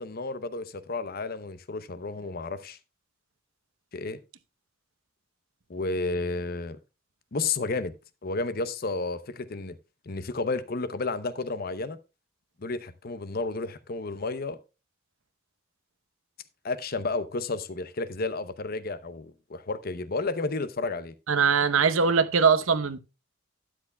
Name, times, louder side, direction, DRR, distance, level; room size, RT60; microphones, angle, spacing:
voice 1, 0.0-2.8 3.9-4.2 5.7-6.8 7.3-7.9 8.2-9.8 10.1-12.0 12.6-14.6 16.6-21.1, left 3 dB, 45° left, 0.7 m, -32 dB
voice 2, 21.3-23.0, right 5 dB, 80° right, 0.9 m, -21 dB
12.5 x 9.7 x 2.2 m
head